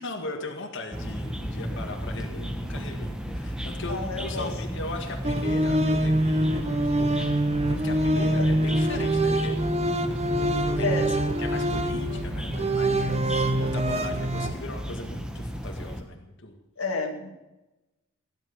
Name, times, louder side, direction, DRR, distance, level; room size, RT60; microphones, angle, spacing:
voice 1, 0.0-7.1 7.4-9.7 10.4-16.6, left 2 dB, 60° left, 2 dB, 1.9 m, -39 dB
sound 1, 0.9-16.0, equal, 5° right, 1.3 m, -34 dB
voice 2, 3.9-4.5 8.2-8.4 10.8-11.1 16.8-17.3, left 4 dB, 90° left, 3 dB, 2.3 m, -30 dB
sound 2, 5.2-14.5, right 1 dB, 30° right, 1.0 m, -25 dB
17.0 x 10.5 x 7.2 m, 1.0 s
head